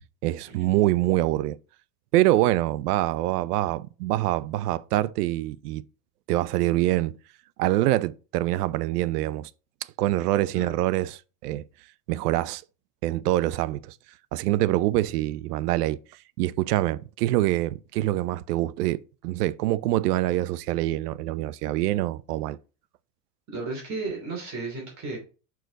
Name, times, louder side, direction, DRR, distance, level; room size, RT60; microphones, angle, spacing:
voice 1, 0.2-1.6 2.1-5.8 6.3-7.1 7.6-9.5 10.0-11.6 12.1-12.6 13.0-14.0 14.3-16.0 16.4-22.6, right 15 dB, 75° right, 0.6 m, -25 dB
voice 2, 23.5-25.2, right 3 dB, 35° right, 2.9 m, -34 dB
6.1 x 4.7 x 3.9 m
supercardioid pair, 115°, 47 cm